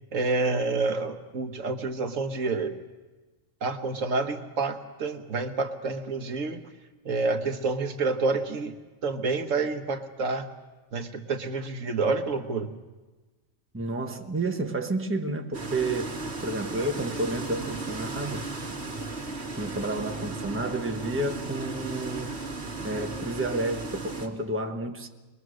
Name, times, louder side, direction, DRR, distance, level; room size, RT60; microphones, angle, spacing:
voice 1, 0.1-2.8 3.6-6.7 7.0-8.8 9.0-10.5 10.9-12.7, right 3 dB, 75° right, 6 dB, 1.6 m, -28 dB
voice 2, 13.7-16.2 16.4-18.5 19.5-22.4 22.8-25.1, right 2 dB, 10° right, 3 dB, 1.1 m, -30 dB
sound 1, 15.5-24.3, right 3 dB, 55° right, 2.4 m, -35 dB
22.0 x 22.0 x 6.4 m, 1.2 s
omnidirectional pair, 1.4 m